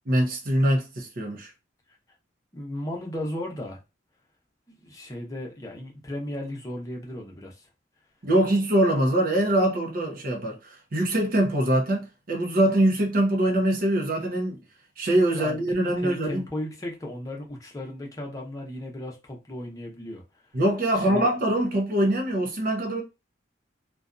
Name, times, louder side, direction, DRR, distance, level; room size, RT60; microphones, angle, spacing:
voice 1, 0.1-1.5 8.2-14.6 15.0-16.4 20.5-23.0, right 1 dB, 50° right, 0.7 m, -23 dB
voice 2, 2.5-3.8 4.7-7.6 15.3-15.6 15.8-20.2 20.9-21.2, left 1 dB, 20° left, 0.7 m, -35 dB
2.6 x 2.2 x 2.4 m
head